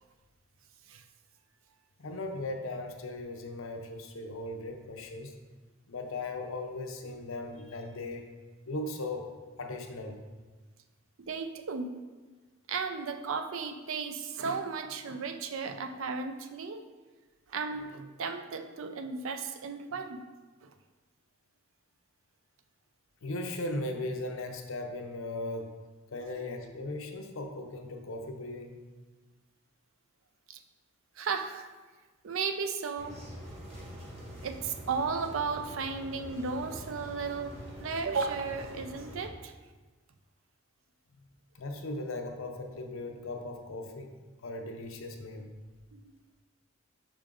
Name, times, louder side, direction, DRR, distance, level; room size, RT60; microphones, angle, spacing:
voice 1, 2.0-5.3 5.9-8.3 8.7-9.3 9.6-10.2 23.2-25.7 26.1-28.8 41.5-44.1 44.4-45.5, left 2 dB, 75° left, 4 dB, 0.7 m, -38 dB
voice 2, 11.3-12.0 12.7-16.8 17.5-20.2 20.6-20.7 26.2-26.3 30.5-30.6 31.2-31.7 32.2-33.2 34.4-39.5 45.9-46.1, right 5 dB, 70° right, 7 dB, 0.5 m, -35 dB
sound 1, 33.0-39.3, equal, 30° right, 1.2 m, -45 dB
5.0 x 5.0 x 3.7 m, 1.3 s
head